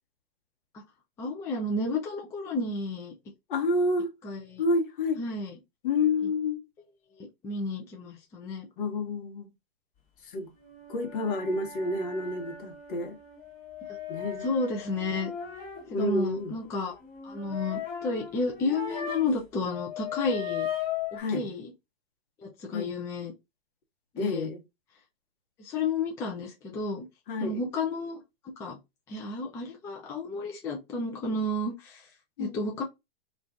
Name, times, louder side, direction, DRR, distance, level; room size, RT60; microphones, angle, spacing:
voice 1, 1.2-3.1 4.2-4.6 5.2-5.6 7.2-8.7 14.4-15.3 16.0-17.0 17.2-20.7 21.1-21.7 22.4-23.3 24.1-24.5 25.6-27.1 27.4-28.2 28.6-28.8 29.1-32.1 32.4-32.8, left 3 dB, 10° left, 0.3 m, -32 dB
voice 2, 3.5-4.1 4.6-5.2 5.8-6.6 8.8-9.5 10.3-10.5 10.9-13.2 14.1-14.5 15.9-16.5 21.1-21.5 22.7-22.9 24.2-24.6 27.3-27.6 32.4-32.7, left 2 dB, 55° left, 1.1 m, -29 dB
sound 1, 10.6-19.4 19.7-21.2, left 8 dB, 25° left, 1.2 m, -38 dB
2.5 x 2.5 x 3.4 m
hypercardioid pair, 125°, 31 cm